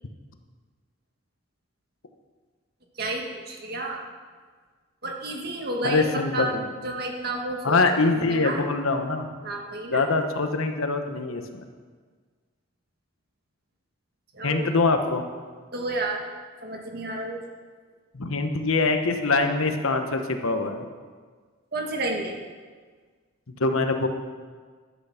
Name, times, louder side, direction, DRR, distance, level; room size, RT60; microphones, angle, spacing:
voice 1, 3.0-4.1 5.0-6.1 6.3-6.6 6.8-8.6 9.4-10.1 14.3-14.7 15.7-16.2 16.6-17.4 21.7-22.4, right 2 dB, 45° right, 1 dB, 1.7 m, -31 dB
voice 2, 5.8-6.7 7.6-9.3 9.9-11.6 14.4-15.2 18.1-20.8 23.6-24.1, left 3 dB, 80° left, 6 dB, 1.1 m, -24 dB
12.0 x 9.5 x 5.8 m, 1.5 s
head